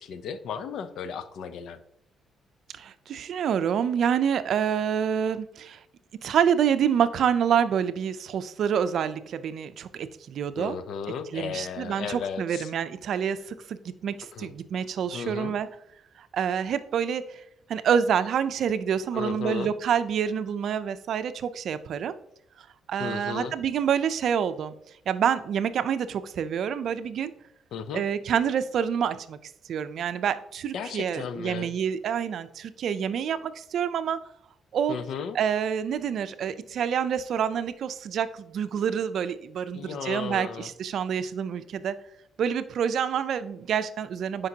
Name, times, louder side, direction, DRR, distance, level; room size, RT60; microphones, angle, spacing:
voice 1, 0.0-1.8 10.6-12.7 14.3-14.5 15.1-15.5 19.1-19.7 23.0-23.6 27.7-28.0 30.7-31.7 34.9-35.4 39.7-40.7 41.2-41.3, left 6 dB, 75° left, 12 dB, 0.6 m, -35 dB
voice 2, 2.7-5.8 6.2-10.7 11.3-15.7 16.2-17.4 17.7-22.1 22.9-24.7 25.1-27.3 27.9-34.2 34.7-35.0 35.3-41.9 42.4-44.5, right 8 dB, 65° right, 13 dB, 0.5 m, -27 dB
9.6 x 5.2 x 2.8 m, 0.75 s
cardioid pair, 90°, 0 cm